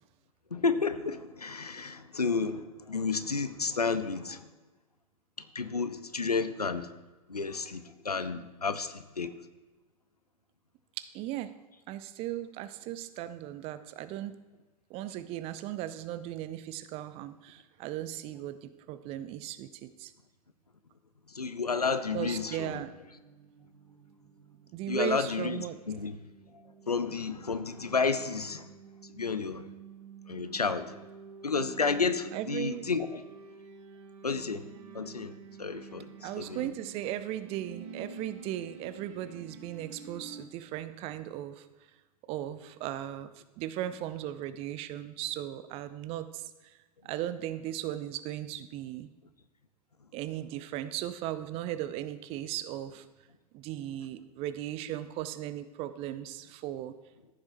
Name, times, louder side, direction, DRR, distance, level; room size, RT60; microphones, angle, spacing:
voice 1, 0.5-4.5 5.5-6.9 7.3-9.4 21.3-22.8 24.9-26.1 26.9-28.7 29.1-29.7 30.3-30.9 31.4-33.2 34.2-34.6 34.9-35.3 35.6-36.7, left 4 dB, 85° left, 12 dB, 0.6 m, -31 dB
voice 2, 11.0-11.6 11.9-14.4 14.9-20.1 22.1-22.9 24.7-25.8 32.3-32.9 36.2-41.7 42.3-43.3 43.6-46.8 47.0-49.1 50.1-53.0 53.5-56.9, right 12 dB, 30° right, 13 dB, 0.5 m, -37 dB
sound 1, 22.5-40.5, right 5 dB, 50° right, 1.1 m, -50 dB
14.5 x 7.0 x 2.6 m, 1.2 s
figure-of-eight pair, 95°, 19 cm